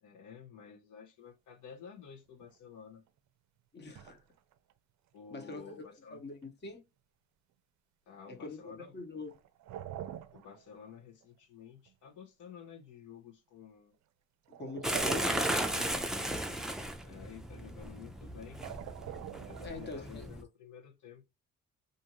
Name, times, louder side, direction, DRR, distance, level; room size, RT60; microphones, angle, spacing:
voice 1, 0.0-3.0 5.1-6.2 8.1-9.0 10.3-14.0 15.2-15.9 17.0-18.7 19.5-21.2, left 7 dB, 80° left, 0.8 m, -51 dB
sound 1, 2.4-2.5 4.0-4.7 5.4-5.6 9.3-10.9 11.2-11.3 11.9-12.0 14.5-16.0 17.6-17.8 18.5-20.1, right 11 dB, 70° right, 0.5 m, -45 dB
voice 2, 3.7-4.2 5.3-5.8 6.1-6.8 8.3-9.4 14.5-15.5 19.6-20.3, left 3 dB, 35° left, 1.0 m, -44 dB
sound 2, 14.8-20.4, right 1 dB, ahead, 0.4 m, -35 dB
2.6 x 2.5 x 2.9 m
cardioid pair, 90°, 30 cm